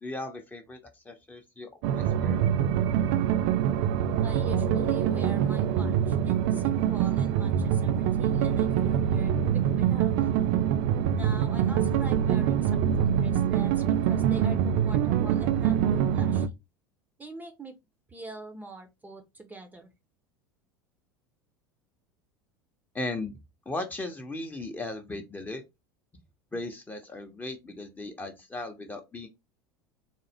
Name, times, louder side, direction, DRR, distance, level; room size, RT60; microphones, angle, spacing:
voice 1, 0.0-2.4 22.9-23.4 23.7-25.6 26.5-29.3, left 2 dB, 15° left, 0.8 m, -37 dB
sound 1, 1.8-16.5, right 9 dB, 55° right, 0.4 m, -25 dB
voice 2, 4.2-10.3 11.1-16.5 17.2-17.8 18.1-19.9, right 2 dB, 15° right, 0.8 m, -44 dB
4.0 x 2.0 x 3.5 m
figure-of-eight pair, 75°, 12 cm